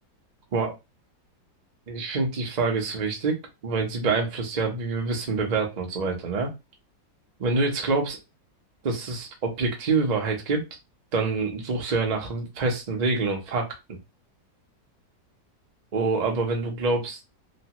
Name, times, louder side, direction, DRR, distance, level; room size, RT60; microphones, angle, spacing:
voice 1, 1.9-6.5 7.4-8.2 8.8-10.7 11.1-14.0 15.9-17.3, right 3 dB, 55° right, 1 dB, 0.4 m, -26 dB
3.1 x 2.2 x 2.9 m, 0.24 s
omnidirectional pair, 1.9 m